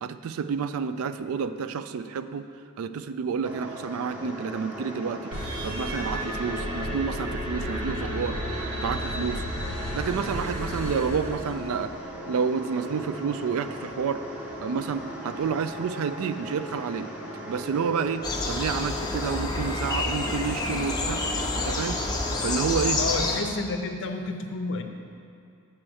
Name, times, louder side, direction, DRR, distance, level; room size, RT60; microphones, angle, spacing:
voice 1, 0.0-2.5 2.8-5.3 5.6-8.4 8.8-9.4 9.9-11.9 12.3-14.2 14.6-17.1 17.5-21.2 21.6-22.0 22.4-23.0, right 6 dB, 65° right, 11 dB, 0.3 m, -29 dB
sound 1, 3.4-22.8, equal, 5° right, 0.9 m, -38 dB
sound 2, 5.3-11.9, equal, 85° right, 1.4 m, -33 dB
sound 3, 18.2-23.4, left 2 dB, 20° left, 0.6 m, -28 dB
voice 2, 23.0-24.8, left 3 dB, 55° left, 5 dB, 0.6 m, -30 dB
8.9 x 4.4 x 6.2 m, 2.4 s
head